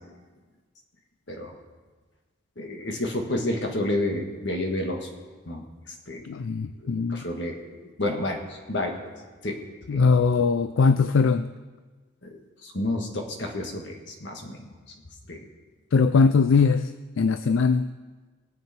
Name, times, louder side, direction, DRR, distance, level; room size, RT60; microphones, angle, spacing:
voice 1, 2.6-5.1 5.5-5.6 6.1-6.2 6.8-7.6 8.0-9.0 9.4-9.6 9.9-10.0 12.6-14.6 15.3-15.5, left 1 dB, 65° left, 2 dB, 1.7 m, -30 dB
voice 2, 6.2-7.2 9.9-11.5 15.9-16.9 17.2-17.9, left 4 dB, 80° left, 12 dB, 0.4 m, -21 dB
20.5 x 7.6 x 4.4 m, 1.4 s
head